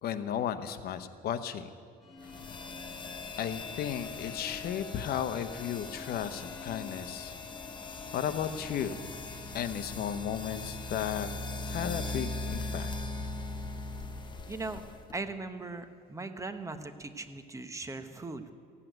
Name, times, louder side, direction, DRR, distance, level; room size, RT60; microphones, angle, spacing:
voice 1, 0.0-1.7 3.4-7.3 8.1-9.1 9.5-11.3 11.6-12.9, left 9 dB, 65° left, 11 dB, 0.9 m, -34 dB
sound 1, 2.0-9.9, left 2 dB, ahead, 3.9 m, -51 dB
sound 2, 2.3-15.1, left 3 dB, 25° left, 1.0 m, -40 dB
voice 2, 14.5-14.8 15.1-18.5, right 3 dB, 20° right, 8 dB, 0.9 m, -39 dB
15.5 x 8.5 x 9.2 m, 2.2 s
cardioid pair, 110°, 17 cm